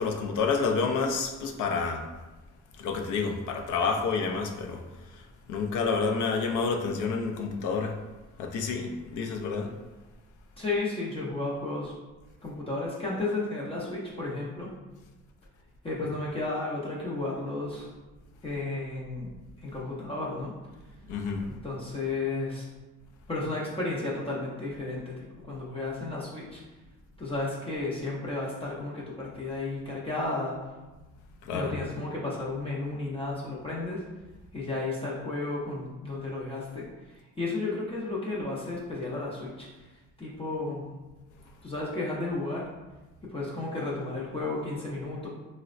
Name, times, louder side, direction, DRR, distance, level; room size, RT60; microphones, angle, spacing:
voice 1, 0.0-2.1 2.8-4.8 5.1-5.2 5.5-8.0 8.4-9.7 21.1-21.5 31.4-31.7, left 4 dB, 85° left, 4 dB, 0.5 m, -29 dB
voice 2, 10.6-11.9 12.4-14.7 15.8-17.9 18.4-19.3 19.6-20.5 21.6-22.6 23.3-25.2 25.5-26.6 27.2-30.6 31.5-34.0 34.5-36.9 37.4-39.7 40.2-40.9 41.6-42.7 43.2-45.3, left 2 dB, 20° left, -6 dB, 0.5 m, -33 dB
3.8 x 2.1 x 2.4 m, 1.1 s
cardioid pair, 150°, 30 cm